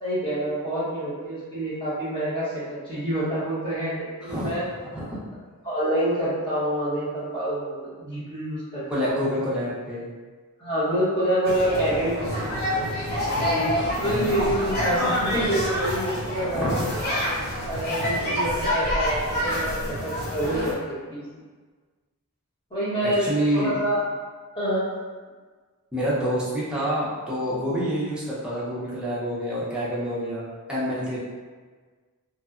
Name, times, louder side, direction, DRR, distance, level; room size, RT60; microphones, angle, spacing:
voice 1, 0.0-4.6 5.6-9.3 10.6-12.3 12.6-12.7 13.4-16.8 17.6-21.2 22.7-23.3 23.5-24.0 24.5-24.8, right 1 dB, 25° left, -11 dB, 1.0 m, -27 dB
voice 2, 4.2-4.6 4.9-5.2 8.9-10.1 14.0-14.4 16.5-16.8 23.2-23.7 25.9-31.2, equal, 5° right, -9 dB, 0.6 m, -27 dB
sound 1, 11.4-20.7, equal, 45° left, 0.7 m, -27 dB
2.8 x 2.2 x 2.4 m, 1.5 s
head